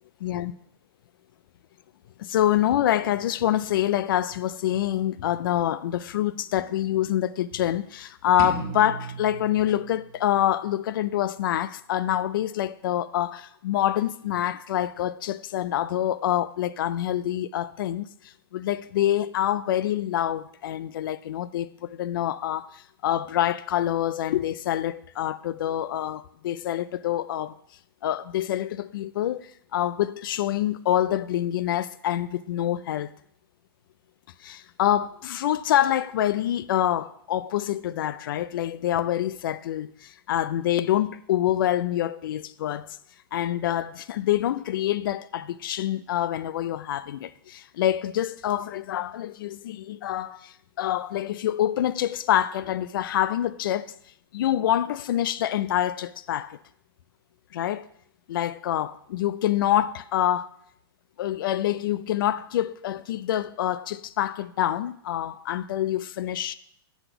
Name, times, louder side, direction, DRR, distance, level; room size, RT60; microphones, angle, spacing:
voice 1, 0.2-0.5 2.2-27.5 28.0-33.1 34.4-43.0 43.3-54.0 54.3-56.6 57.5-57.9 58.3-60.5 61.2-66.5, left 12 dB, 55° left, 0.4 m, -26 dB
sound 1, 8.4-10.4, right 5 dB, 40° right, 1.4 m, -36 dB
7.7 x 4.1 x 6.7 m
hypercardioid pair, 160°, 13 cm